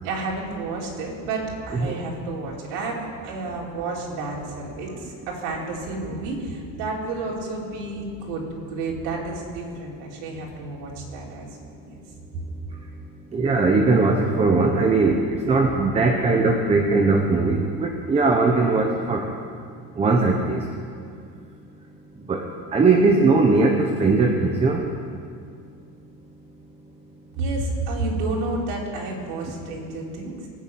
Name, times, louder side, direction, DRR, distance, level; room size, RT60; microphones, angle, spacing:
voice 1, 0.0-11.5 11.8-11.9 27.3-30.5, right 3 dB, 80° right, -3 dB, 4.3 m, -30 dB
voice 2, 13.3-15.2 15.5-19.3 20.0-20.6 22.3-22.4 22.7-24.8, right 3 dB, 15° right, 2 dB, 0.9 m, -19 dB
21.0 x 7.1 x 9.2 m, 2.3 s
cardioid pair, 170°, 39 cm